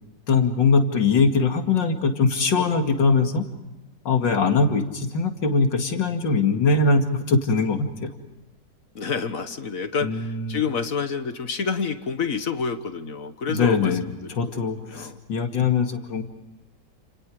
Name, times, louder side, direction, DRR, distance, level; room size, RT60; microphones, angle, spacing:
voice 1, 0.3-3.4 4.0-8.1 10.0-10.6 13.5-14.0 14.3-16.2, left 4 dB, 80° left, 5 dB, 2.9 m, -21 dB
voice 2, 8.9-15.2, left 5 dB, 50° left, 10 dB, 1.6 m, -29 dB
30.0 x 28.0 x 4.9 m, 1.0 s
omnidirectional pair, 1.9 m